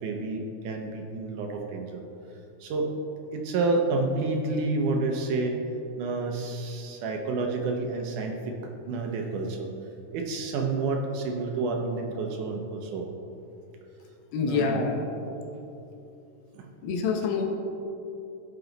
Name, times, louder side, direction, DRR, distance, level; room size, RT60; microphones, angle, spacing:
voice 1, 0.0-2.0 2.6-3.0 3.3-5.6 6.0-9.7 10.1-13.1 14.4-14.8 16.5-16.7, right 3 dB, 70° right, 2 dB, 2.2 m, -29 dB
voice 2, 14.3-15.0 16.8-17.5, left 5 dB, 90° left, 3 dB, 2.9 m, -26 dB
16.5 x 6.5 x 4.0 m, 2.8 s
omnidirectional pair, 4.0 m